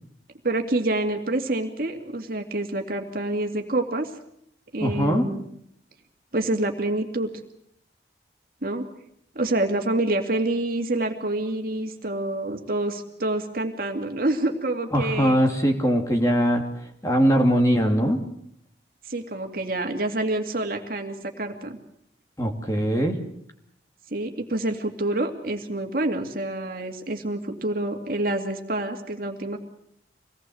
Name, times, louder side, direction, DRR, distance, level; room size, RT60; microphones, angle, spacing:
voice 1, 0.4-4.1 4.7-5.5 6.3-7.3 8.6-8.8 9.3-15.4 19.1-21.8 24.1-29.6, right 2 dB, 50° right, 4 dB, 2.5 m, -27 dB
voice 2, 4.8-5.2 14.9-16.6 17.0-18.2 22.4-23.2, equal, 20° left, 3 dB, 2.7 m, -21 dB
25.5 x 18.5 x 7.9 m, 0.72 s
head